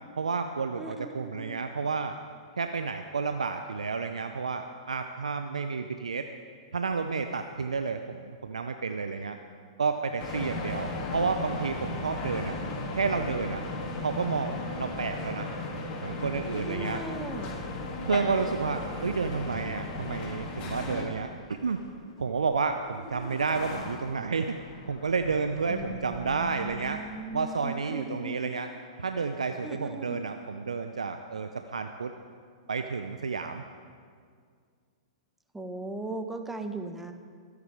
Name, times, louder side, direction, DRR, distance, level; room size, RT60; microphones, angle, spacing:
voice 1, 0.2-2.1 2.6-6.3 6.7-9.4 9.8-12.6 13.0-13.6 14.0-15.5 16.0-17.0 18.0-21.3 21.6-21.8 22.2-24.6 24.9-27.0 27.3-28.7 29.0-32.1 32.7-33.6, right 5 dB, 75° right, 7 dB, 0.6 m, -30 dB
voice 2, 0.8-1.6 16.7-17.6 25.7-28.4 29.6-30.2 35.5-37.1, right 2 dB, 5° right, 6 dB, 1.2 m, -38 dB
sound 1, 10.2-21.0, left 2 dB, 35° left, 2.9 m, -35 dB
sound 2, 20.2-27.6, left 3 dB, 55° left, 2.9 m, -47 dB
23.5 x 8.5 x 4.9 m, 2.1 s
figure-of-eight pair, 105°, 3 cm